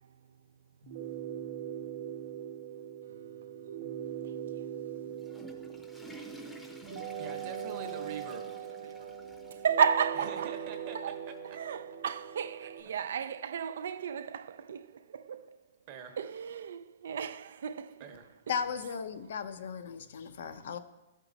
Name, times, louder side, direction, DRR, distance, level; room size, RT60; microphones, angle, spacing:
sound 1, 0.8-12.8, right 9 dB, 60° right, 1.0 m, -41 dB
Water / Toilet flush, 4.9-9.9 10.3-10.4 11.1-11.2 12.5-12.6, right 1 dB, 5° left, 0.6 m, -51 dB
voice 1, 7.1-8.4 10.1-11.6 12.6-12.9 15.9-16.1 18.0-18.2, right 6 dB, 40° right, 1.0 m, -45 dB
voice 2, 9.6-10.5 11.6-14.9 15.1-15.4 16.2-17.9, right 7 dB, 80° right, 0.3 m, -32 dB
voice 3, 18.5-20.8, left 7 dB, 70° left, 0.6 m, -36 dB
13.0 x 4.6 x 3.9 m
hypercardioid pair, 155°, 0 cm